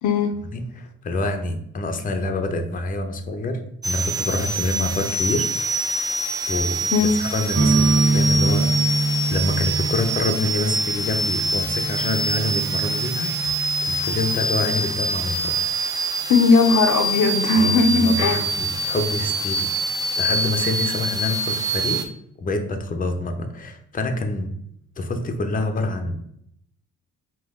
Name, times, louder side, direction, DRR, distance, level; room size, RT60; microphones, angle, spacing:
voice 1, 0.0-0.3 6.9-7.2 16.3-18.5, left 4 dB, 75° left, 4 dB, 0.7 m, -18 dB
voice 2, 0.5-3.6 3.8-5.5 6.5-6.8 7.3-8.7 9.3-13.5 13.9-15.7 17.6-22.0 22.4-24.5 25.0-26.2, left 2 dB, 25° left, 6 dB, 0.7 m, -26 dB
sound 1, 3.8-22.0, right 2 dB, 10° right, 0.6 m, -25 dB
sound 2, 7.5-15.2, right 3 dB, 75° right, 1.2 m, -25 dB
5.2 x 2.5 x 3.6 m, 0.71 s
cardioid pair, 100°, 31 cm